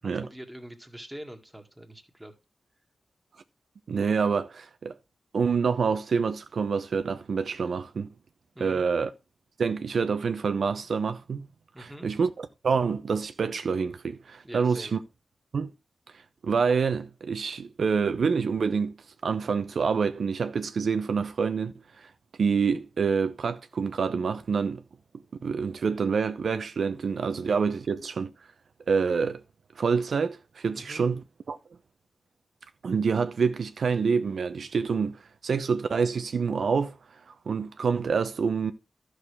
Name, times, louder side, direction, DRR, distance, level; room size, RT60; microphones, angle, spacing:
voice 1, 0.0-2.3 8.6-8.9 11.7-12.1 14.4-14.9 30.7-31.1, equal, 10° right, 2.0 m, -44 dB
voice 2, 3.9-4.9 5.3-8.1 8.6-9.1 9.6-11.5 11.8-15.0 15.5-15.7 16.4-19.0 19.2-22.1 22.4-24.8 25.4-28.3 28.9-29.4 29.8-31.2 31.5-31.6 32.8-36.9 37.5-38.7, right 5 dB, 75° right, 0.8 m, -27 dB
12.5 x 6.5 x 3.5 m
wide cardioid pair, 95°, 0 cm